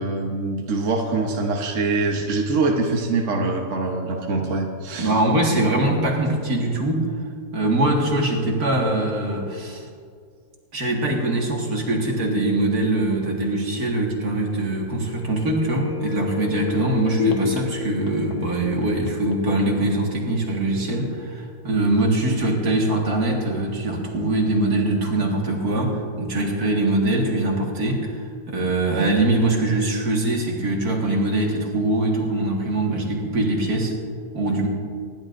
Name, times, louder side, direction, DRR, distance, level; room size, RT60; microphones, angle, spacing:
voice 1, 0.0-5.2, right 3 dB, 55° right, 1 dB, 1.3 m, -24 dB
voice 2, 5.0-7.1 7.5-9.8 10.7-33.9 34.3-34.7, right 2 dB, 70° right, -1 dB, 2.4 m, -22 dB
sound 1, 15.0-20.7 21.0-21.1, left 6 dB, 75° left, 1.7 m, -30 dB
25.5 x 11.0 x 2.6 m, 2.2 s
omnidirectional pair, 1.6 m